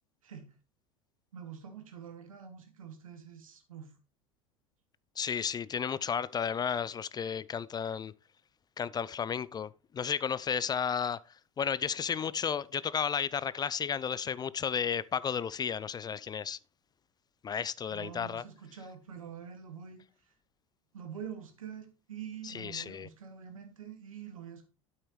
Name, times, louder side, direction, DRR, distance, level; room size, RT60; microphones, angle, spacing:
voice 1, 0.2-0.5 1.3-4.0 17.9-20.0 20.9-24.7, right 8 dB, 85° right, 1.9 m, -46 dB
voice 2, 5.2-8.1 8.8-11.2 11.6-16.6 17.4-18.4 22.4-23.1, left 7 dB, 25° left, 0.4 m, -33 dB
8.7 x 8.6 x 3.1 m
hypercardioid pair, 80°, 17 cm